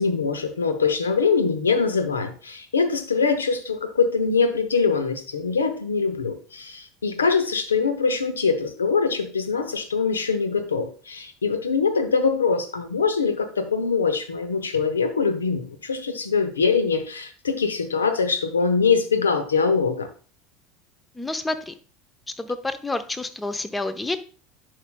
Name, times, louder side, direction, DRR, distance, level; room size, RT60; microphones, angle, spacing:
voice 1, 0.0-20.1, left 5 dB, 85° left, 9 dB, 0.8 m, -23 dB
voice 2, 21.1-21.7 22.4-24.2, left 2 dB, 15° left, 11 dB, 0.8 m, -29 dB
11.0 x 4.9 x 2.3 m, 0.38 s
hypercardioid pair, 75°, 0 cm